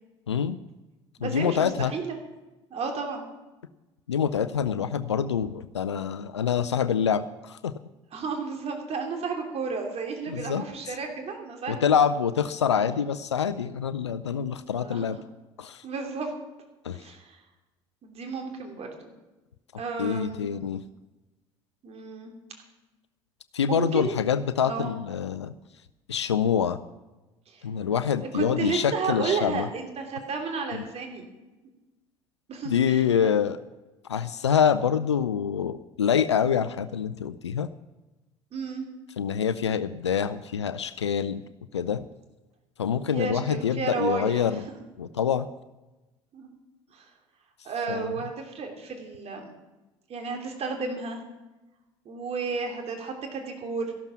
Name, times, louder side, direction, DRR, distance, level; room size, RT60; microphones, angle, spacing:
voice 1, 0.3-0.6 1.2-1.9 4.1-7.7 10.3-11.0 11.7-15.2 15.6-15.8 16.8-17.1 20.0-20.8 23.5-25.5 26.1-26.8 27.6-29.7 30.7-30.8 32.7-33.6 34.1-37.7 39.2-41.4 41.7-42.0 42.8-44.6 45.0-45.5 47.9-48.2, left 7 dB, 90° left, 13 dB, 0.4 m, -26 dB
voice 2, 1.2-2.2 2.7-3.2 8.1-11.8 14.7-15.0 15.8-16.3 16.9-17.4 18.0-19.1 19.8-20.5 21.8-22.3 23.7-24.2 24.6-24.9 27.5-27.6 28.3-31.3 32.5-33.0 38.5-38.9 43.1-44.8 46.3-46.5 46.9-47.0 47.6-49.5 50.1-51.2 52.0-53.9, right 4 dB, 45° right, 3 dB, 3.0 m, -32 dB
13.5 x 12.0 x 6.0 m, 1.1 s
figure-of-eight pair, 60°, 14 cm